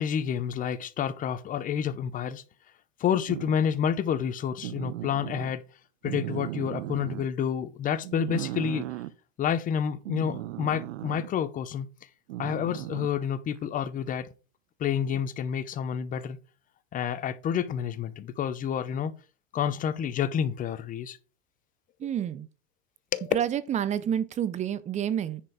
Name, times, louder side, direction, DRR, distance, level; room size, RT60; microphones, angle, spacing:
voice 1, 0.0-2.4 3.0-5.6 6.0-8.8 9.4-11.9 12.4-14.3 14.8-16.4 16.9-19.1 19.5-21.2 23.1-23.3, left 8 dB, 25° left, 0.7 m, -29 dB
sound 1, 3.3-3.7 4.6-5.5 6.0-7.3 8.0-9.1 10.1-11.3 12.3-13.2 15.1-15.2, right 16 dB, 80° right, 0.9 m, -36 dB
voice 2, 22.0-22.5 23.3-25.4, right 9 dB, 20° right, 0.6 m, -29 dB
9.9 x 4.4 x 4.9 m
supercardioid pair, 140°, 36 cm